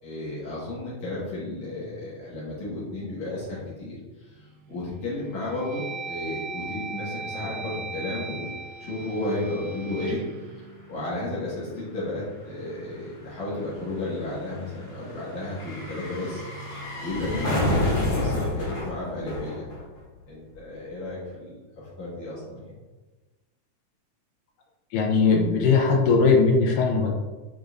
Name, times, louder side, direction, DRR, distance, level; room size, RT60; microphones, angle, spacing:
voice 1, 0.0-10.2 10.5-10.6 10.9-19.7 20.3-22.6, left 2 dB, 60° left, -9 dB, 2.9 m, -33 dB
sound 1, 4.4-4.8 5.3-11.5, right 4 dB, 90° right, 2.3 m, -38 dB
sound 2, 9.5-9.6 9.8-20.2 20.5-20.6, left 1 dB, 35° left, 1.8 m, -31 dB
voice 2, 24.9-27.1, left 4 dB, 80° left, 1 dB, 2.3 m, -19 dB
9.7 x 3.9 x 2.6 m, 1.2 s
omnidirectional pair, 4.0 m